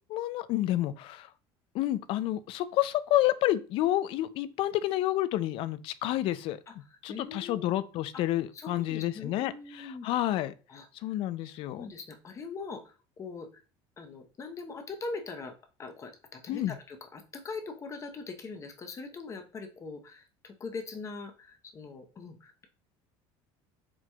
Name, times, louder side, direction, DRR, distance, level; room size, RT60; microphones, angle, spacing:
voice 1, 0.1-1.3 1.7-6.6 7.0-10.5 11.0-11.9 16.5-16.8, left 14 dB, 60° left, 15 dB, 0.4 m, -29 dB
voice 2, 7.1-7.8 8.1-8.2 8.5-10.1 10.7-13.5 14.0-22.7, left 4 dB, 30° left, 5 dB, 0.8 m, -42 dB
4.6 x 4.0 x 2.3 m, 0.34 s
cardioid pair, 130°, 11 cm